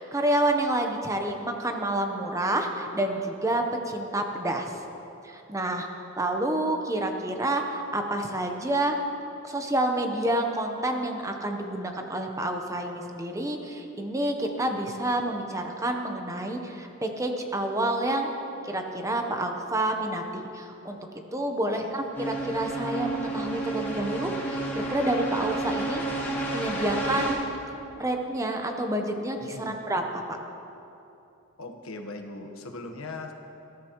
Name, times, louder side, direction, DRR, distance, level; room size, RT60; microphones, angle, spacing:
voice 1, 0.0-4.7 5.2-9.0 9.4-18.3 18.6-21.0 21.3-27.4 28.0-30.0, right 1 dB, 15° right, 3 dB, 0.9 m, -29 dB
sound 1, 22.1-27.3, right 2 dB, 10° left, 2.9 m, -31 dB
voice 2, 29.4-29.8 31.6-33.3, left 2 dB, 85° left, 4 dB, 1.2 m, -39 dB
20.0 x 13.5 x 3.1 m, 2.9 s
head